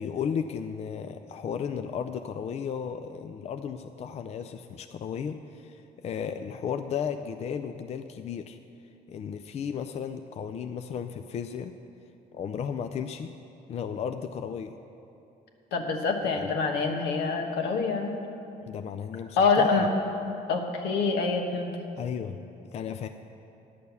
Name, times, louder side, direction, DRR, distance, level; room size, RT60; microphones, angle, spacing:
voice 1, 0.0-8.6 9.1-11.7 12.3-13.3 13.7-14.8 16.4-16.5 18.7-19.9 22.0-22.4 22.7-23.1, left 7 dB, 40° left, 8 dB, 0.4 m, -34 dB
voice 2, 15.7-18.1 19.4-19.9 20.5-21.8, left 4 dB, 80° left, 3 dB, 1.2 m, -26 dB
10.5 x 6.6 x 6.9 m, 2.8 s
cardioid pair, 110°, 17 cm